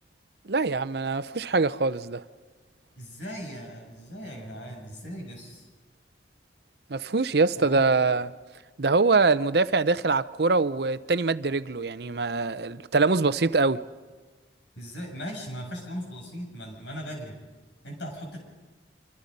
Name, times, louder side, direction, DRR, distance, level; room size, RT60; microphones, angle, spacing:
voice 1, 0.4-2.2 6.9-8.3 8.8-13.8, right 3 dB, 60° right, 0.7 m, -24 dB
voice 2, 3.0-5.7 7.6-7.8 14.8-17.3 17.8-18.4, equal, 80° left, 7.8 m, -38 dB
26.0 x 26.0 x 5.4 m
head